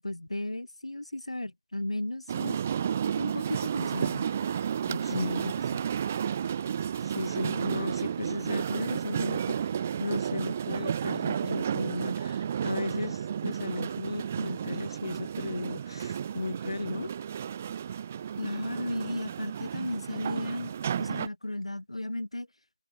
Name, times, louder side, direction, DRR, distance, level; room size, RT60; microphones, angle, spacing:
voice 1, 0.0-2.6 3.2-4.3 5.1-5.5 18.4-22.5, left 1 dB, 70° left, 1.1 m, -35 dB
sound 1, 2.3-21.3, right 8 dB, 15° right, 0.5 m, -32 dB
voice 2, 4.9-5.5 7.0-9.6 10.0-17.1, left 2 dB, 50° left, 0.8 m, -35 dB
figure-of-eight pair, 165°, 3 cm